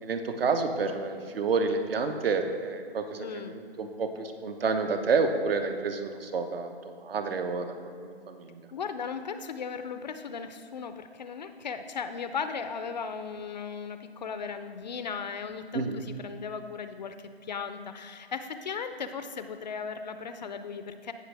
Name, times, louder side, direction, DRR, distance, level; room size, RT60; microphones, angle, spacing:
voice 1, 0.0-7.7 8.0-8.6 15.7-16.0, right 4 dB, 60° right, 7 dB, 1.0 m, -29 dB
voice 2, 3.2-3.6 8.7-21.1, left 6 dB, 45° left, 9 dB, 0.5 m, -37 dB
16.5 x 6.2 x 3.4 m, 2.2 s
hypercardioid pair, 150°, 33 cm